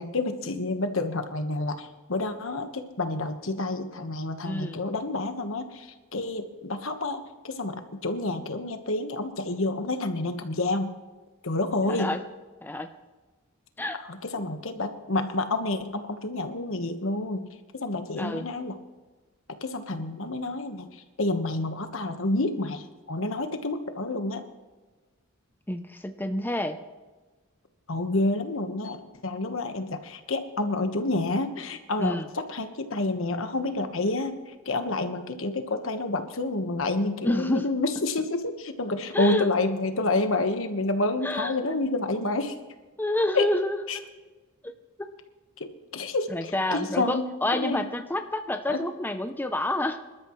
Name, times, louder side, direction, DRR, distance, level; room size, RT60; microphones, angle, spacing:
voice 1, 0.0-10.9 11.4-12.1 14.1-17.5 17.7-18.7 19.6-24.4 27.9-42.5 43.3-43.5 43.9-44.0 45.6-48.0 48.7-48.9, left 2 dB, 70° left, 7 dB, 1.4 m, -29 dB
voice 2, 4.4-4.8 11.9-12.2 12.6-12.9 13.8-14.0 18.2-18.5 25.7-26.8 32.0-32.3 37.2-37.7 39.1-39.5 41.2-41.5 43.0-43.8 44.6-44.7 46.3-50.0, left 1 dB, 10° left, 7 dB, 0.6 m, -28 dB
25.5 x 12.5 x 3.2 m, 1.3 s
head